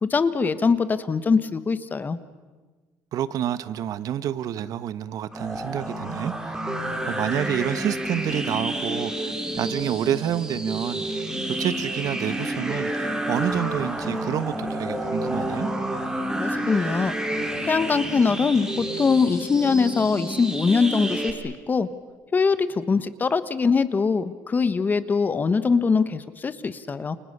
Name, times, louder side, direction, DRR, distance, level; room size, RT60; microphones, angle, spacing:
voice 1, 0.0-2.2 16.4-17.1 17.6-21.9 22.3-27.2, left 5 dB, 25° left, 13 dB, 1.4 m, -22 dB
voice 2, 3.1-6.5 7.1-15.7, right 10 dB, 60° right, 15 dB, 1.2 m, -29 dB
sound 1, 5.3-21.3, right 1 dB, 10° right, 3.9 m, -29 dB
30.0 x 29.5 x 6.8 m, 1.3 s
cardioid pair, 135°, 7 cm